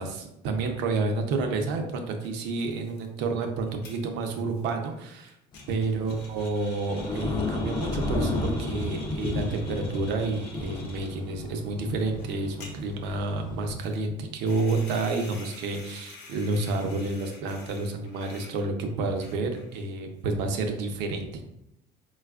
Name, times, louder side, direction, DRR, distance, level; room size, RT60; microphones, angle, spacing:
voice 1, 0.0-5.4 5.7-21.5, right 3 dB, 75° right, 4 dB, 0.6 m, -30 dB
sound 1, 2.2-2.3 2.6-11.2 11.6-12.3 12.6-13.2 13.8-14.1 14.4-18.7 19.1-19.9, left 3 dB, 65° left, 0.7 m, -48 dB
Thunder / Rain, 5.5-13.8, left 2 dB, 25° left, 0.4 m, -33 dB
4.0 x 2.3 x 2.3 m, 0.82 s
cardioid pair, 120°, 19 cm